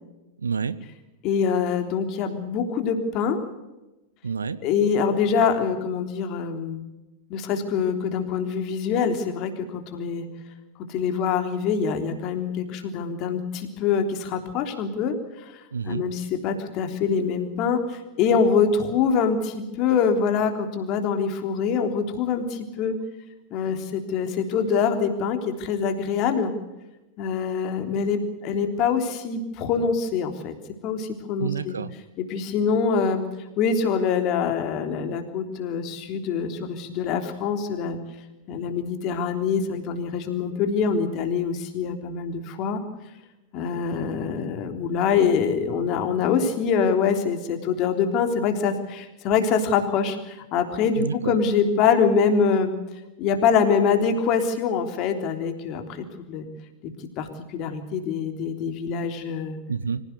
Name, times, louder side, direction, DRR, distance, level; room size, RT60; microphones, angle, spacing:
voice 1, 0.4-0.8 4.2-4.6 15.7-16.0 31.4-31.9 50.9-51.4 59.7-60.0, right 5 dB, 75° right, 16 dB, 1.0 m, -28 dB
voice 2, 1.2-3.4 4.6-6.8 7.3-10.3 10.9-22.9 23.5-26.5 27.2-30.5 30.8-31.7 32.2-33.2 33.6-38.0 38.5-42.8 43.5-52.7 53.2-56.5 57.2-59.6, left 6 dB, 40° left, 6 dB, 3.5 m, -24 dB
25.5 x 16.0 x 8.2 m, 1.0 s
figure-of-eight pair, 90°, 0 cm